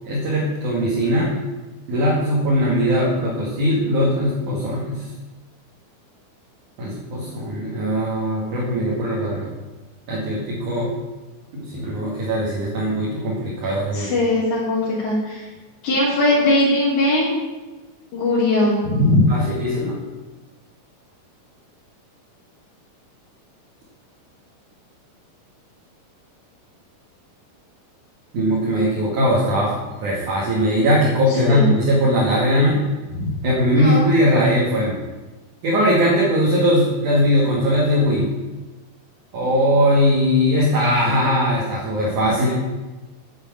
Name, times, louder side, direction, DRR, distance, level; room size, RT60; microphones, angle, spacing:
voice 1, 0.0-1.3 1.9-5.0 6.8-9.5 10.1-10.9 11.5-14.1 19.3-20.0 28.3-32.8 33.4-35.0 35.6-38.3 39.3-42.5, equal, 60° right, -5 dB, 3.6 m, -20 dB
voice 2, 13.9-15.5 15.8-17.3 18.1-19.3 31.5-31.7 33.1-33.3 33.8-34.1, left 1 dB, 60° left, -7 dB, 4.2 m, -19 dB
10.0 x 8.7 x 8.7 m, 1.2 s
omnidirectional pair, 4.1 m